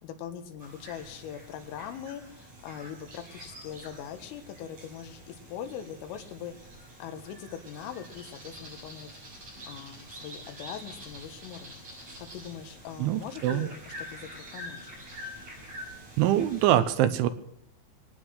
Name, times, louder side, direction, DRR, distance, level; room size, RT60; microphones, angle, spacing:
voice 1, 0.0-6.7 7.0-9.1 9.7-11.8 12.2-14.9, left 9 dB, 90° left, 7 dB, 4.1 m, -41 dB
sound 1, 0.6-16.8, equal, 35° right, 8.2 m, -46 dB
voice 2, 13.0-13.7 16.2-17.3, right 12 dB, 80° right, 12 dB, 3.1 m, -24 dB
23.5 x 9.6 x 6.3 m, 0.72 s
omnidirectional pair, 5.7 m